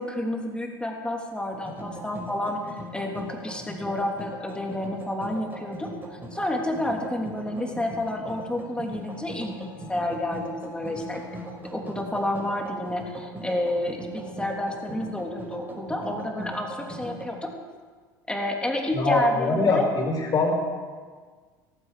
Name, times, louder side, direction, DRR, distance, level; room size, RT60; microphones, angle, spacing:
voice 1, 0.0-2.6 2.9-5.9 6.3-11.2 11.7-17.5 18.3-19.9, left 1 dB, 10° left, 1 dB, 3.2 m, -30 dB
sound 1, 1.5-17.3, right 1 dB, 15° right, 5.1 m, -40 dB
voice 2, 18.9-20.5, left 3 dB, 35° left, 0 dB, 5.4 m, -23 dB
18.0 x 15.0 x 5.1 m, 1.5 s
figure-of-eight pair, 75°, 12 cm